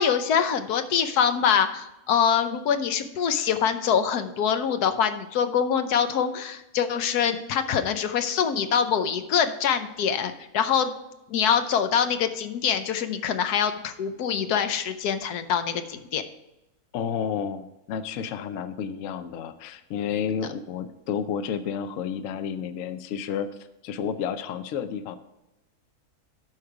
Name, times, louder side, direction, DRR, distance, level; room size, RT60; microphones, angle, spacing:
voice 1, 0.0-10.9 11.3-16.2, left 7 dB, 90° left, 9 dB, 1.3 m, -24 dB
voice 2, 16.9-23.5 23.8-25.2, left 7 dB, 65° left, 11 dB, 1.0 m, -31 dB
12.5 x 4.9 x 4.8 m, 0.94 s
omnidirectional pair, 1.6 m